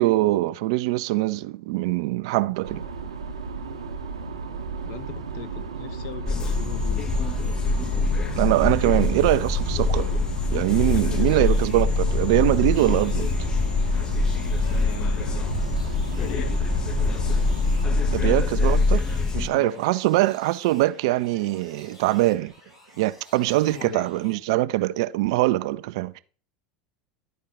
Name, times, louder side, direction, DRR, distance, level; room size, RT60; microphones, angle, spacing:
voice 1, 0.0-2.8 8.4-10.2 10.5-13.3 18.1-22.5 23.0-26.2, right 17 dB, 60° right, 0.4 m, -23 dB
sound 1, 2.6-18.4, right 5 dB, 85° right, 0.9 m, -33 dB
voice 2, 4.8-7.4 10.8-11.6 14.6-15.5 16.1-16.6 19.4-19.8 23.7-24.1, left 9 dB, 55° left, 0.8 m, -39 dB
sound 2, 6.3-19.5, left 3 dB, 25° left, 0.5 m, -24 dB
sound 3, 10.7-24.3, left 1 dB, 90° left, 3.8 m, -50 dB
12.0 x 4.5 x 3.5 m
hypercardioid pair, 80°, 3 cm